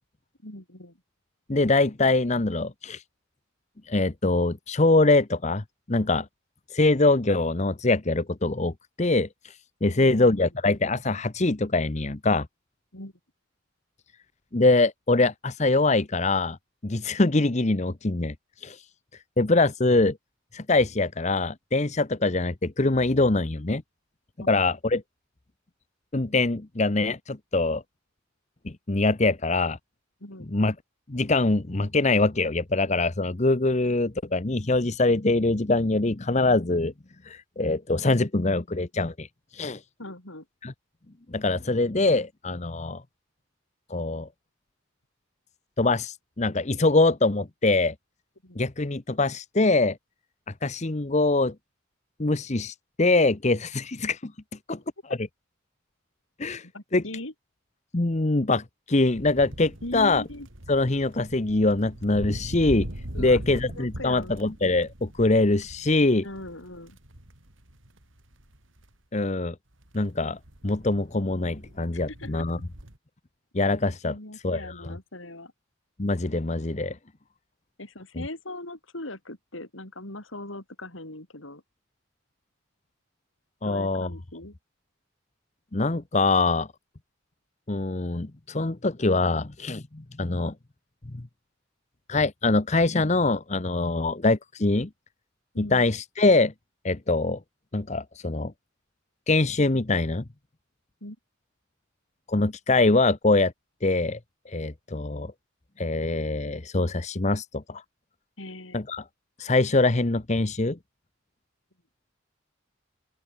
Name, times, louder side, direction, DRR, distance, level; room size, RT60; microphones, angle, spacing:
voice 1, 0.4-1.0 9.8-10.5 12.9-13.1 24.4-24.5 30.2-30.5 40.0-40.5 48.4-48.6 56.6-57.3 59.8-60.5 63.1-64.4 66.2-67.0 71.9-72.5 74.0-75.5 77.8-81.6 83.6-84.5 95.5-95.9 101.0-101.2 108.4-108.8, left 1 dB, 75° left, 5.5 m, -40 dB
voice 2, 1.5-3.0 3.9-5.6 5.9-6.3 6.7-9.6 9.8-12.5 14.5-16.6 16.8-18.3 18.6-18.8 19.4-20.2 20.5-23.8 24.5-25.0 26.1-27.8 28.6-29.8 30.5-30.7 31.1-36.9 37.2-39.3 39.5-39.8 40.6-40.7 41.3-43.0 43.9-44.3 45.8-47.9 48.6-50.0 50.6-51.5 52.2-54.3 54.7-54.8 56.4-56.7 56.9-57.0 57.9-60.2 60.7-62.9 63.2-66.2 69.1-69.5 69.9-72.6 73.5-74.1 74.4-74.9 76.0-77.0 83.6-84.1 85.7-86.7 87.7-90.5 91.1-91.2 92.1-94.9 95.6-96.5 96.8-97.4 97.7-98.5 99.3-100.2 102.3-103.5 103.8-104.2 104.5-105.3 105.8-107.8 108.7-109.0 109.4-110.8, left 2 dB, 35° left, 0.9 m, -23 dB
sound 1, 59.1-68.9 69.8-73.0, right 1 dB, 75° right, 4.1 m, -40 dB
open air
head